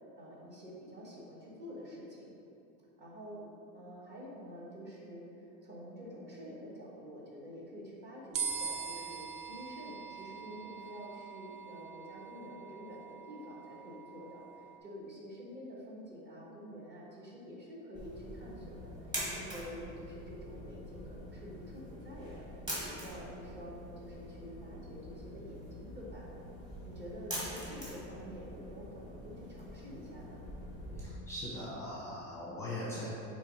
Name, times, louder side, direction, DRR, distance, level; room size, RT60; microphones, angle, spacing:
voice 1, 0.2-2.3 3.0-3.5 3.7-26.3 26.8-30.5, equal, 30° right, -5 dB, 1.4 m, -48 dB
sound 1, 8.3-14.8, right 6 dB, 90° right, 0.7 m, -43 dB
sound 2, 17.9-31.0, equal, 15° right, 1.3 m, -44 dB
voice 2, 31.0-33.1, left 1 dB, 10° left, -6 dB, 0.7 m, -40 dB
7.8 x 3.1 x 4.6 m, 2.7 s
cardioid pair, 170°, 33 cm